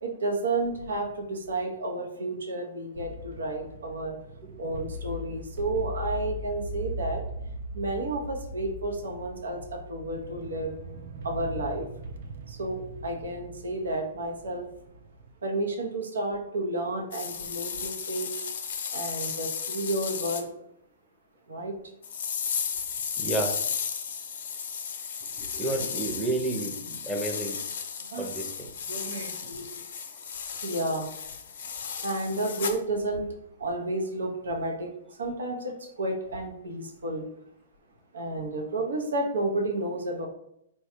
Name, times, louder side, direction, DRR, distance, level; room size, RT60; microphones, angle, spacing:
voice 1, 0.0-4.1 4.6-7.2 7.7-10.7 11.2-11.9 12.5-14.6 15.4-18.3 18.9-20.5 21.5-21.7 28.1-28.3 28.9-29.7 30.6-31.1 32.0-33.2 33.6-34.9 35.2-37.2 38.1-40.3, right 2 dB, 85° right, 1 dB, 0.9 m, -31 dB
sound 1, 2.9-15.3, equal, 60° right, 0.5 m, -40 dB
sound 2, 17.1-20.4 22.0-32.8, left 7 dB, 65° left, 0.6 m, -34 dB
voice 2, 23.2-23.6 25.4-27.6 28.2-28.7, right 2 dB, 5° right, 1 dB, 0.8 m, -31 dB
4.5 x 2.3 x 4.4 m, 0.76 s
hypercardioid pair, 135°, 0 cm